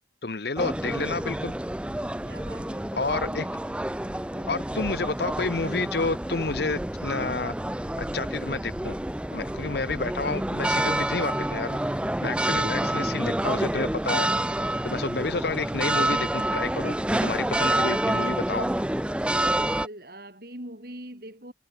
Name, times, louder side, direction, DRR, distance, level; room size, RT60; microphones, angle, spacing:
voice 1, 0.2-1.5 2.9-3.5 4.5-7.5 8.0-9.0 9.3-11.8 12.2-14.3 14.8-17.0 17.2-18.7, left 3 dB, 60° left, 1.0 m, -30 dB
sound 1, 0.6-19.9, right 1 dB, 5° right, 0.4 m, -28 dB
voice 2, 2.2-3.6 4.3-4.7 12.2-13.0 19.4-21.5, right 1 dB, 55° right, 6.0 m, -43 dB
head